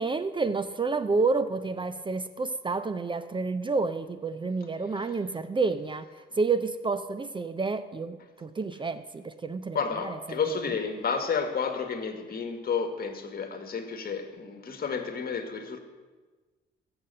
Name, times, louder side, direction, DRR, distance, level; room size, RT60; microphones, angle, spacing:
voice 1, 0.0-6.0 6.4-9.8 10.5-10.6, right 4 dB, 25° right, 0.6 m, -29 dB
voice 2, 9.7-15.8, left 5 dB, 50° left, 1.7 m, -31 dB
16.0 x 7.9 x 6.6 m
cardioid pair, 90°, 20 cm